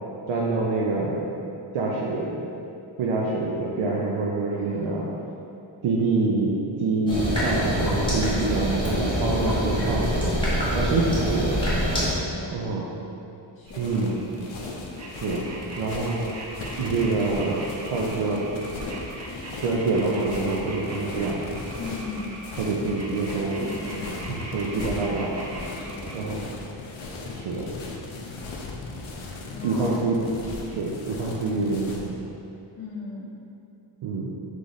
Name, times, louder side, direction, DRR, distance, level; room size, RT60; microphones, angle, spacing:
voice 1, 0.3-1.2 1.7-2.5 3.0-5.0 5.8-11.6 12.5-12.8 13.8-14.1 15.1-15.5 15.8-16.3 16.8-18.4 19.5-21.4 22.6-23.6 24.3-25.4 26.1-26.4 27.3-27.7 29.6-30.2 30.7-32.1 34.0-34.3, right 3 dB, 75° right, -4 dB, 0.6 m, -26 dB
voice 2, 4.5-5.3 10.8-11.3 12.1-12.9 13.6-14.2 21.8-22.4 23.5-24.3 24.6-24.9 25.8-26.4 29.5-30.0 32.7-33.3, left 3 dB, 25° left, -7 dB, 0.6 m, -38 dB
sound 1, 7.1-12.1, equal, 10° left, 1.1 m, -25 dB
sound 2, 13.7-32.1, left 3 dB, 75° left, 0.7 m, -37 dB
sound 3, 13.7-26.2, right 1 dB, 35° right, 0.5 m, -40 dB
3.6 x 3.3 x 4.0 m, 2.6 s
wide cardioid pair, 160°, 48 cm